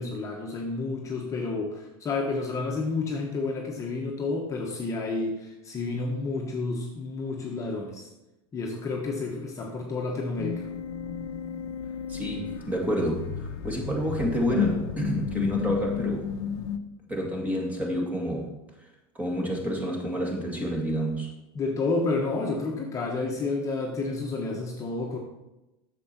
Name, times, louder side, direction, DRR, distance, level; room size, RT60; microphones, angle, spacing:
voice 1, 0.0-8.1 8.5-10.7 21.5-25.2, left 3 dB, 25° left, -1 dB, 1.2 m, -30 dB
sound 1, 10.4-16.8, left 7 dB, 80° left, 0.8 m, -32 dB
voice 2, 12.1-16.3 17.1-18.5 19.1-21.3, equal, 10° right, -1 dB, 2.1 m, -29 dB
8.6 x 6.9 x 4.5 m, 0.97 s
supercardioid pair, 130°, 13 cm